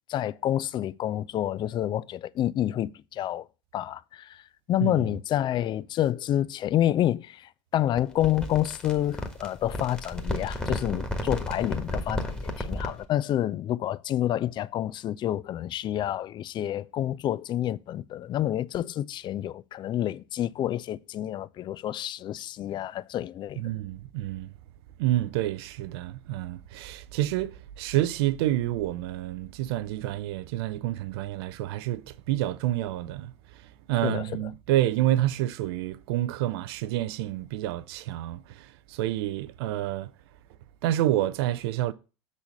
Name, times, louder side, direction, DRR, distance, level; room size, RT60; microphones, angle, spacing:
voice 1, 0.1-3.5 3.7-23.7 34.0-34.3, left 12 dB, 30° left, 0.4 m, -28 dB
sound 1, 8.0-13.0, left 1 dB, 5° left, 1.4 m, -33 dB
voice 2, 23.6-24.5 25.0-40.1 40.8-41.9, right 14 dB, 55° right, 0.6 m, -28 dB
6.9 x 4.2 x 6.4 m
figure-of-eight pair, 80°, 15 cm